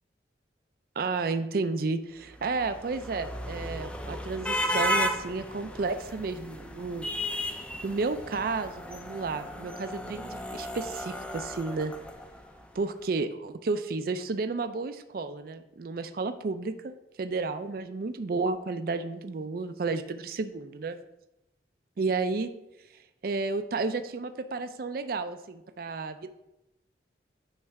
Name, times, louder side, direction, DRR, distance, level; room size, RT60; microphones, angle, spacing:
voice 1, 1.0-7.1 7.8-11.9 12.8-21.0 22.0-22.5 23.2-26.3, right 3 dB, 55° right, 9 dB, 0.4 m, -32 dB
sound 1, 2.4-12.7, equal, 5° left, 0.5 m, -34 dB
9.7 x 3.3 x 5.8 m, 0.90 s
head